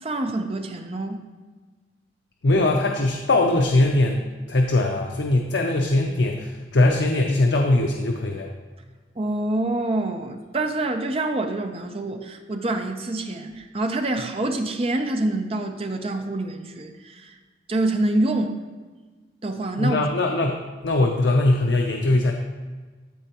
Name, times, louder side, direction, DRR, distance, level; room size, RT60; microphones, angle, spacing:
voice 1, 0.0-1.2 9.2-17.3 17.7-18.6 19.4-20.1, right 2 dB, 35° right, 5 dB, 0.6 m, -26 dB
voice 2, 2.4-8.5 19.8-22.3, left 2 dB, 85° left, 2 dB, 0.6 m, -21 dB
13.0 x 4.4 x 2.9 m, 1.4 s
head